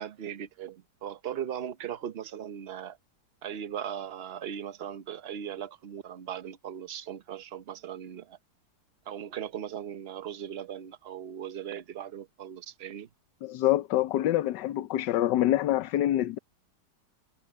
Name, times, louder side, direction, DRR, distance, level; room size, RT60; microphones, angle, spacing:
voice 1, 0.0-3.0 3.4-8.4 9.1-13.1, right 9 dB, 45° right, 0.9 m, -38 dB
voice 2, 13.4-16.4, left 13 dB, 80° left, 1.3 m, -26 dB
omnidirectional pair, 1.9 m